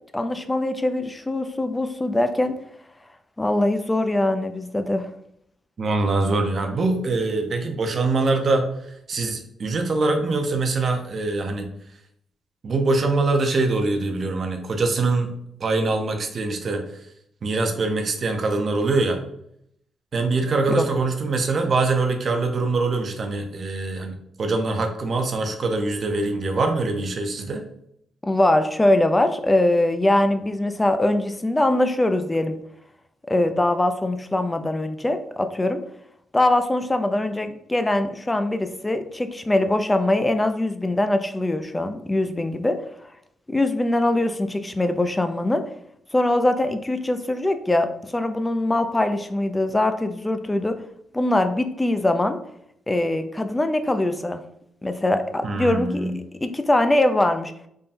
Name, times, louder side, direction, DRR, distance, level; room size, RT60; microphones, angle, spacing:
voice 1, 0.1-2.5 3.4-5.1 20.8-20.9 28.2-32.6 33.3-35.8 36.3-42.8 43.5-45.6 46.1-50.8 51.1-52.4 52.9-54.4 54.8-57.5, left 1 dB, 15° left, 8 dB, 0.4 m, -22 dB
voice 2, 5.8-8.7 9.1-11.7 12.6-15.3 15.6-16.8 17.4-19.2 20.1-27.6 55.4-56.1, right 3 dB, 45° right, 4 dB, 0.6 m, -23 dB
3.5 x 2.2 x 4.1 m, 0.73 s
cardioid pair, 115°, 0 cm